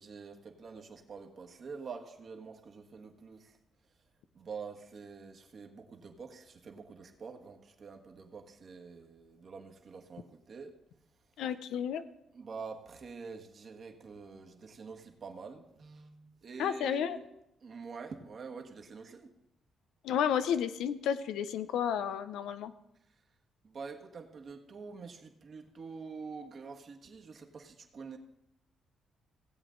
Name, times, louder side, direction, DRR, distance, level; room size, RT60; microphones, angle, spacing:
voice 1, 0.0-3.6 4.3-10.7 12.3-17.2 17.6-19.3 23.6-28.2, right 5 dB, 50° right, 4 dB, 1.5 m, -46 dB
voice 2, 11.4-12.0 16.6-17.2 20.0-22.7, left 8 dB, 85° left, 12 dB, 0.6 m, -32 dB
17.0 x 8.0 x 3.8 m, 0.84 s
cardioid pair, 90°, 0 cm